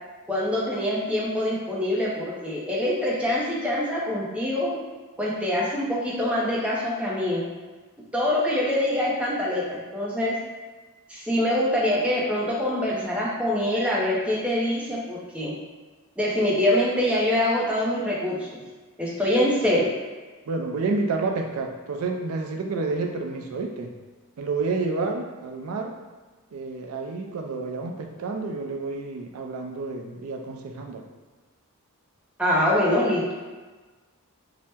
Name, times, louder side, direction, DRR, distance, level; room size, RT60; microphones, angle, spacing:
voice 1, 0.3-4.7 5.2-7.5 8.1-10.3 11.1-15.5 16.2-18.5 19.0-19.9 32.4-33.3, left 1 dB, 5° right, -6 dB, 0.5 m, -24 dB
voice 2, 20.5-23.9 24.4-25.9 26.5-31.0, right 3 dB, 70° right, 2 dB, 0.4 m, -29 dB
2.8 x 2.0 x 3.4 m, 1.3 s
head